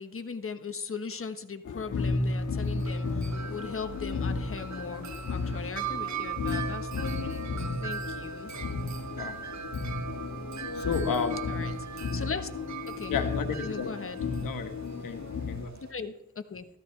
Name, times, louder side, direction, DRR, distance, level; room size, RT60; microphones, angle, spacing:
voice 1, 0.0-7.5 7.8-8.5 11.4-12.5 12.9-13.1 13.6-14.2 15.8-16.7, left 5 dB, 40° left, 8 dB, 1.3 m, -39 dB
sound 1, 1.6-15.7, left 3 dB, 65° left, 2.0 m, -33 dB
Wind chime, 2.6-15.9, right 7 dB, 60° right, 1.0 m, -40 dB
voice 2, 10.7-11.5 13.1-14.1 14.4-15.7, left 6 dB, 85° left, 6 dB, 1.6 m, -33 dB
14.5 x 14.0 x 3.4 m, 0.82 s
cardioid pair, 75°, 33 cm